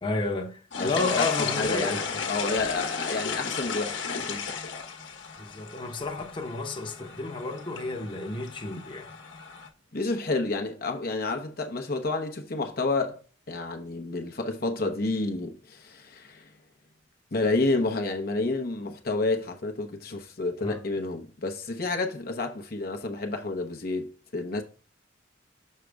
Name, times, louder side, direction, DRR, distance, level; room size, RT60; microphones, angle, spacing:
voice 1, 0.0-2.2 5.4-9.1 20.6-20.8, left 3 dB, 25° left, 1.0 m, -31 dB
sound 1, 0.7-9.7, left 6 dB, 75° left, 1.2 m, -34 dB
voice 2, 0.8-1.3 1.6-4.5 9.9-13.2 13.5-16.5 17.3-24.6, left 3 dB, 50° left, 0.9 m, -30 dB
6.6 x 6.2 x 3.4 m
head